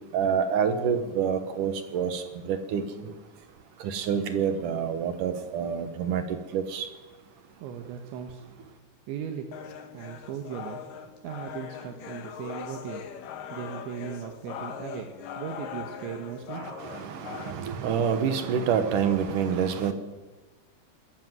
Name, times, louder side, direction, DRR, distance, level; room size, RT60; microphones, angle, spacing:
voice 1, 0.1-2.8 3.8-6.9 16.6-19.9, right 7 dB, 65° right, 9 dB, 2.2 m, -27 dB
voice 2, 7.6-8.4 9.1-10.9 11.2-13.1 13.5-17.0, right 8 dB, 85° right, 5 dB, 3.7 m, -38 dB
sound 1, 9.5-17.5, left 8 dB, 60° left, 2.7 m, -40 dB
20.0 x 14.0 x 9.3 m, 1.2 s
omnidirectional pair, 5.1 m